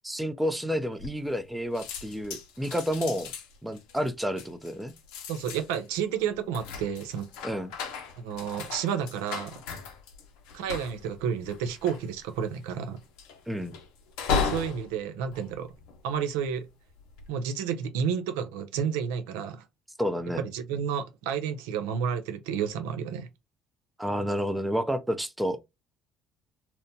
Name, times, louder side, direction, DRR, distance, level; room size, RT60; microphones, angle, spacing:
voice 1, 0.0-3.3 3.6-4.9 7.4-7.7 13.5-13.7 20.0-20.4 24.0-25.6, equal, 5° right, 0.6 m, -30 dB
sound 1, 1.0-1.5 1.7-16.3 16.9-17.3, left 5 dB, 75° left, 0.6 m, -36 dB
voice 2, 5.3-7.3 8.2-9.6 10.5-13.0 14.4-15.7 16.0-16.7 17.3-19.6 20.4-23.3, right 7 dB, 80° right, 0.4 m, -31 dB
2.8 x 2.1 x 2.7 m
hypercardioid pair, 60°, 0 cm